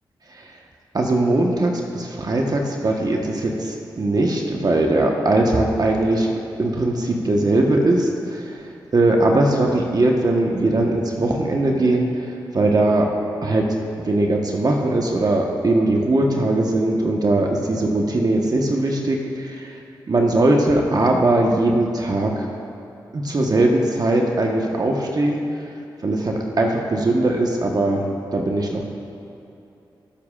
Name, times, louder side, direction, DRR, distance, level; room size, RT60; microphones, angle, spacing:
voice 1, 0.9-6.3 6.6-8.6 8.9-13.1 13.4-13.7 14.1-19.8 20.1-22.5 23.1-25.4 26.0-28.0 28.3-28.8, right 2 dB, 50° right, 0 dB, 1.2 m, -20 dB
20.5 x 7.2 x 2.5 m, 2.8 s
supercardioid pair, 45°, 9 cm